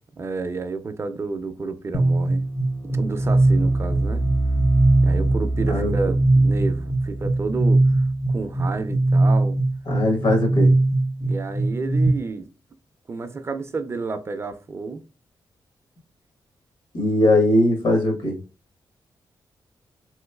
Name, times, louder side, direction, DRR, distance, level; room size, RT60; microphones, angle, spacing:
voice 1, 0.2-2.4 2.8-4.3 5.0-8.0 8.3-9.6 11.2-12.5 13.1-15.0, right 4 dB, 35° right, 0.4 m, -30 dB
sound 1, 1.9-12.1, right 2 dB, 35° left, 0.5 m, -20 dB
voice 2, 9.9-10.7 16.9-18.4, left 1 dB, 75° left, 1.1 m, -20 dB
3.4 x 3.0 x 2.2 m
cardioid pair, 100°, 8 cm